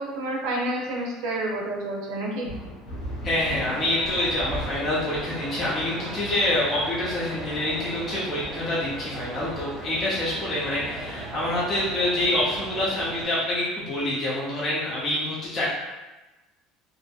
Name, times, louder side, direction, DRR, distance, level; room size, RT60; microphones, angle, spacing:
voice 1, 0.0-2.5, right 1 dB, 70° right, -2 dB, 0.5 m, -29 dB
sound 1, 2.4-12.4, equal, 85° left, 0.8 m, -40 dB
voice 2, 3.2-15.6, left 1 dB, 30° left, -7 dB, 0.5 m, -26 dB
sound 2, 3.4-13.3, right 2 dB, 30° right, 0.6 m, -37 dB
2.5 x 2.5 x 2.3 m, 1.1 s
cardioid pair, 150°, 0 cm